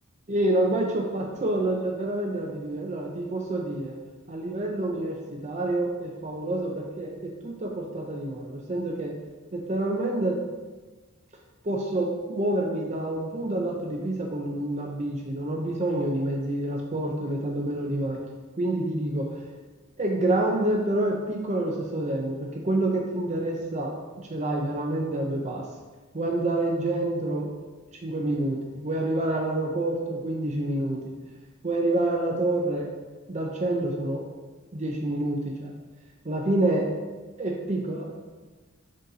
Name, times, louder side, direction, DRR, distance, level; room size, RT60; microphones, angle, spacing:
voice 1, 0.3-4.0 4.3-9.1 9.5-10.4 11.6-18.2 18.6-19.4 20.0-25.7 26.1-27.5 28.0-31.1 31.6-33.0 33.3-34.2 34.7-35.7 36.2-37.0 37.4-38.1, right 1 dB, 35° right, 0 dB, 0.6 m, -28 dB
9.9 x 4.0 x 2.8 m, 1.3 s
head